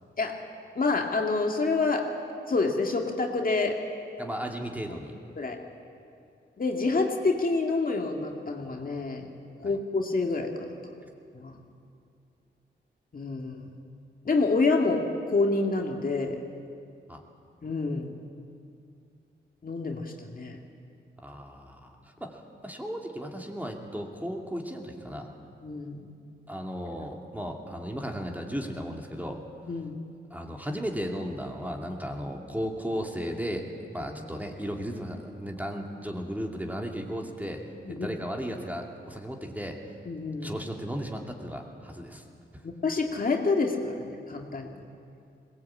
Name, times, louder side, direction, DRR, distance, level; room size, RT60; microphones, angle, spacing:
voice 1, 0.8-2.1 2.5-3.8 5.4-5.6 6.6-9.3 9.6-10.5 11.3-11.6 13.1-13.7 14.3-16.4 17.6-18.1 19.6-20.6 25.6-26.1 29.7-29.9 34.0-34.1 37.8-38.1 40.1-40.6 42.6-44.8, left 3 dB, 50° left, 2 dB, 2.2 m, -27 dB
voice 2, 4.2-5.1 9.6-9.8 17.1-17.2 21.2-22.0 22.2-25.3 26.5-29.4 30.3-33.7 33.9-37.6 37.9-39.8 40.4-42.2, equal, 10° right, 1 dB, 2.5 m, -35 dB
21.5 x 18.5 x 8.6 m, 2.5 s
wide cardioid pair, 90°, 19 cm